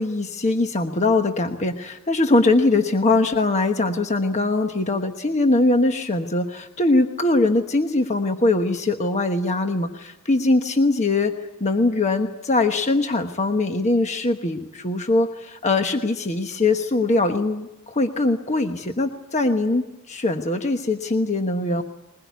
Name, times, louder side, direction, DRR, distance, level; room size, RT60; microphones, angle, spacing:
voice 1, 0.0-21.8, left 2 dB, 30° left, 6 dB, 1.2 m, -22 dB
21.5 x 20.5 x 9.4 m, 0.91 s
head